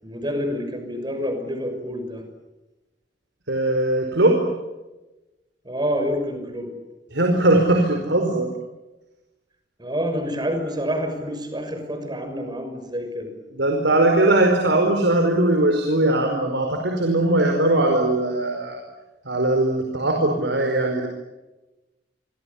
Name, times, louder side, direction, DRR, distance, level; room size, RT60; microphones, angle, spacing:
voice 1, 0.0-2.2 5.6-6.7 9.8-13.3, equal, 25° right, 6 dB, 6.3 m, -27 dB
voice 2, 3.5-4.5 7.1-8.5 13.5-18.8 19.2-21.1, right 2 dB, 90° right, 3 dB, 4.9 m, -20 dB
27.5 x 25.0 x 8.5 m, 1.1 s
head